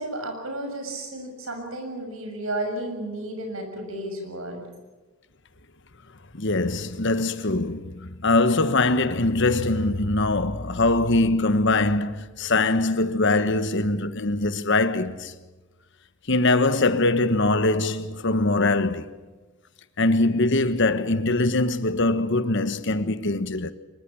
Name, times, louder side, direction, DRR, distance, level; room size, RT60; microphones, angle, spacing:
voice 1, 0.0-4.6, right 1 dB, 75° right, 6.7 m, -32 dB
voice 2, 6.3-15.3 16.3-19.1 20.0-23.7, left 2 dB, 60° left, 1.4 m, -22 dB
24.5 x 22.0 x 7.2 m
head